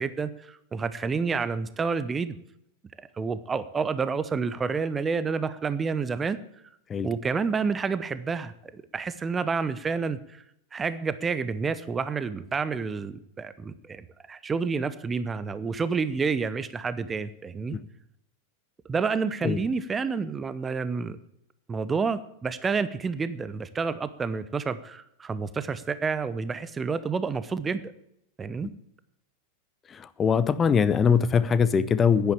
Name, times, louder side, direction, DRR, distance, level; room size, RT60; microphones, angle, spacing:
voice 1, 0.0-2.4 3.0-6.4 7.0-10.4 10.7-17.8 18.9-21.2 21.7-27.9 28.4-28.7, right 5 dB, 15° right, 14 dB, 0.8 m, -29 dB
voice 2, 29.9-32.3, left 6 dB, 20° left, 15 dB, 0.8 m, -22 dB
10.5 x 10.5 x 8.4 m, 0.77 s
figure-of-eight pair, 90°, 0 cm